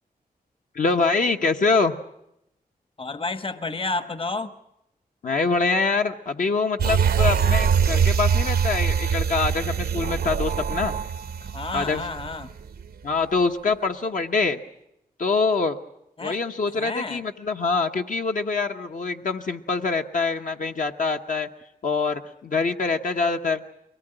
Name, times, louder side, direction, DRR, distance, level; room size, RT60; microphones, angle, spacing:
voice 1, 0.7-2.0 5.2-11.0 11.7-12.0 13.0-14.6 15.2-15.8 16.2-21.5 21.8-23.6, left 4 dB, 60° left, 4 dB, 1.0 m, -24 dB
voice 2, 3.0-4.5 11.4-12.5 16.2-16.4 16.7-17.2, left 3 dB, 35° left, 12 dB, 1.1 m, -31 dB
sound 1, 6.8-12.4 12.8-12.9, right 7 dB, 85° right, 0.8 m, -23 dB
23.0 x 19.0 x 8.9 m, 0.82 s
wide cardioid pair, 110°, 16 cm